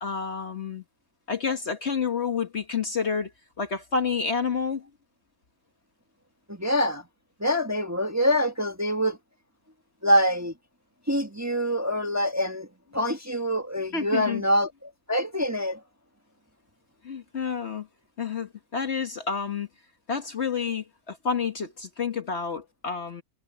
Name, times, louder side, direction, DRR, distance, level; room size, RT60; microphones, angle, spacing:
voice 1, 0.0-0.8 1.3-3.3 3.6-4.9 13.9-14.4 17.0-17.9 18.2-19.7 20.1-23.2, left 5 dB, 45° left, 1.4 m, -29 dB
voice 2, 6.5-7.0 7.4-9.2 10.0-10.5 11.1-12.7 12.9-15.8, equal, 10° right, 1.4 m, -25 dB
omnidirectional pair, 1.7 m